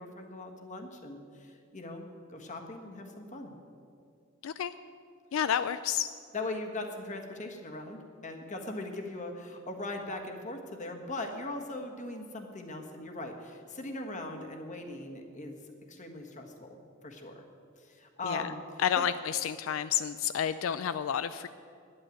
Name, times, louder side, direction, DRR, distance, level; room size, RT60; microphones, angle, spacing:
voice 1, 0.0-3.5 6.3-15.6 15.9-17.4 17.8-18.6 19.0-19.1, left 2 dB, 40° left, 3 dB, 1.4 m, -40 dB
voice 2, 4.4-4.7 5.3-6.1 18.2-18.5 18.8-21.5, left 9 dB, 85° left, 13 dB, 0.4 m, -30 dB
9.9 x 9.0 x 9.2 m, 2.4 s
head